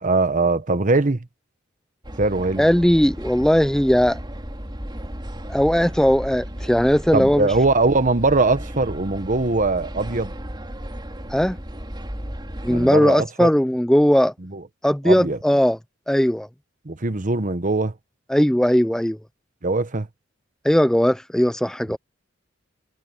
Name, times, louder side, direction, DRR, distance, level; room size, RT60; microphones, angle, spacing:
voice 1, 0.0-1.3 2.2-2.7 7.1-10.3 12.7-13.5 14.4-14.6 15.0-15.4 16.8-17.9 19.6-20.1 21.9-22.0, right 3 dB, 40° right, 1.1 m, -21 dB
sound 1, 2.0-12.9, equal, 25° right, 3.9 m, -34 dB
voice 2, 2.6-4.2 5.5-7.5 11.3-11.6 12.6-14.3 14.8-15.8 16.1-16.5 18.3-19.2 20.6-22.0, equal, 5° left, 0.5 m, -18 dB
head